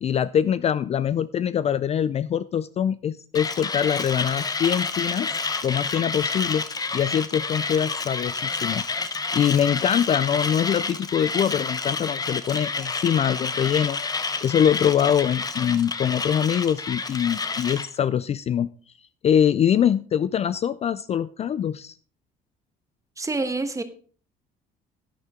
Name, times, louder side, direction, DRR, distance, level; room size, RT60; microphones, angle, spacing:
voice 1, 0.0-5.3 5.6-6.6 6.9-8.8 9.3-14.0 14.4-18.7 19.2-22.0, left 9 dB, 40° left, 16 dB, 0.4 m, -23 dB
Mechanisms, 3.3-17.9, left 4 dB, 20° left, 0.9 m, -29 dB
voice 2, 23.2-23.8, right 3 dB, 20° right, 9 dB, 1.3 m, -27 dB
11.5 x 9.4 x 3.7 m, 0.42 s
cardioid pair, 110°, 17 cm